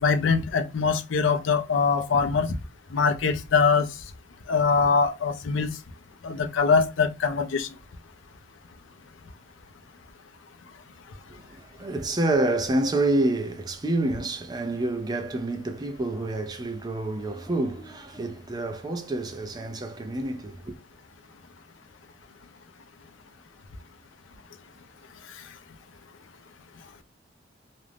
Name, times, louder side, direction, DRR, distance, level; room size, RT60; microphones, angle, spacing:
voice 1, 0.0-2.6 2.9-3.9 4.5-5.7 6.2-7.7, left 5 dB, 80° left, 0.5 m, -23 dB
voice 2, 11.3-20.8, right 2 dB, 20° right, 0.4 m, -28 dB
2.5 x 2.0 x 3.2 m
head